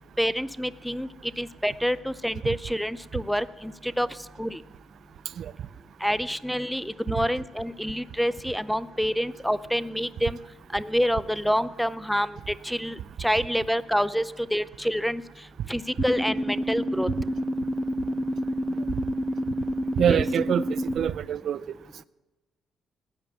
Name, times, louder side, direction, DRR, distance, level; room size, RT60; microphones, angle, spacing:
voice 1, 0.2-1.1 1.4-4.1 4.4-4.6 6.0-10.4 10.7-15.2 15.7-17.1 20.1-20.2, equal, ahead, 0.5 m, -27 dB
sound 1, 16.0-21.0, equal, 15° left, 0.9 m, -28 dB
voice 2, 20.0-21.6, right 9 dB, 65° right, 0.4 m, -25 dB
16.0 x 9.6 x 7.4 m
cardioid pair, 90°, 0 cm